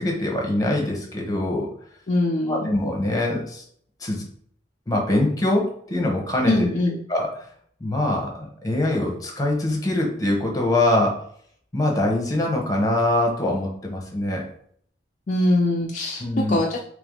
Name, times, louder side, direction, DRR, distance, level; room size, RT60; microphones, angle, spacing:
voice 1, 0.0-1.7 2.5-3.6 4.0-4.2 4.9-6.5 7.1-7.3 7.8-11.2 11.7-14.4 16.2-16.6, left 1 dB, 20° left, 0 dB, 1.0 m, -23 dB
voice 2, 2.1-2.7 6.4-7.0 15.3-16.8, left 2 dB, 45° left, -2 dB, 0.4 m, -22 dB
3.5 x 3.3 x 3.6 m, 0.62 s
head